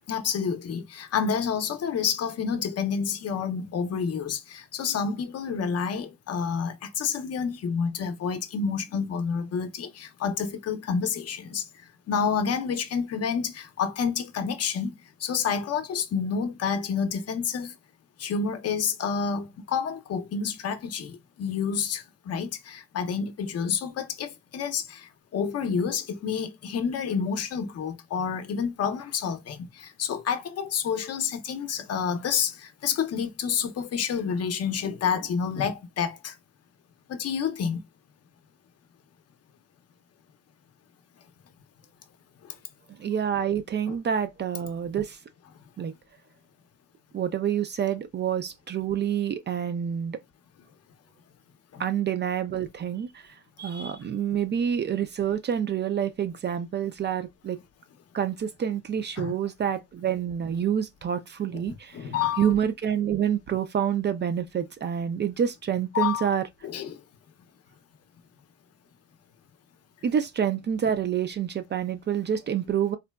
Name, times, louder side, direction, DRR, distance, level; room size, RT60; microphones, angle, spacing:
voice 1, 0.1-11.7 12.1-17.7 18.2-36.3 37.1-37.8 42.4-42.6 43.9-44.0 51.7-51.8 59.2-59.3 61.5-61.6 61.9-62.5 65.9-66.3 66.6-67.0, left 6 dB, 55° left, 0.6 m, -29 dB
voice 2, 43.0-45.2 45.8-45.9 47.1-50.2 51.8-57.6 58.1-62.1 62.4-66.5 70.0-73.0, right 8 dB, 35° right, 0.4 m, -27 dB
3.8 x 2.1 x 2.2 m
cardioid pair, 90°, 30 cm